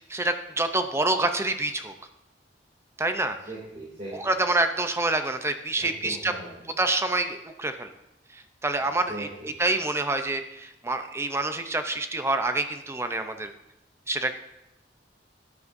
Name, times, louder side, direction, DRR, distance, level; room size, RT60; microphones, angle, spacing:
voice 1, 0.1-1.9 3.0-3.3 4.1-6.3 6.8-7.9 8.6-13.5 14.1-14.3, right 2 dB, 15° right, 8 dB, 0.5 m, -27 dB
voice 2, 3.4-4.3 5.8-6.7 8.8-9.5, right 1 dB, 40° right, -6 dB, 2.6 m, -40 dB
13.0 x 9.7 x 2.6 m, 0.89 s
head